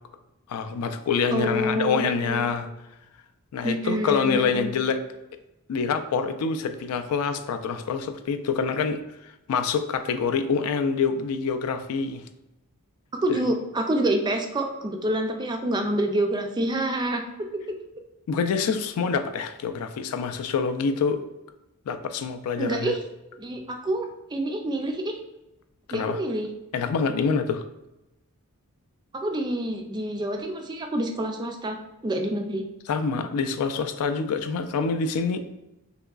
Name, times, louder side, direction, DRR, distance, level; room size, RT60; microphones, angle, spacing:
voice 1, 0.5-2.7 3.5-5.0 5.7-9.0 9.5-12.2 13.3-13.4 18.3-21.2 21.9-22.9 25.9-26.2 26.7-27.6 32.9-35.4, left 5 dB, 75° left, 8 dB, 0.3 m, -26 dB
voice 2, 1.3-2.5 3.6-4.8 13.1-17.2 22.6-23.0 23.3-25.2 25.9-26.5 29.1-31.8 32.0-32.6, right 1 dB, 20° right, 4 dB, 0.3 m, -27 dB
3.5 x 2.9 x 2.3 m, 0.94 s
head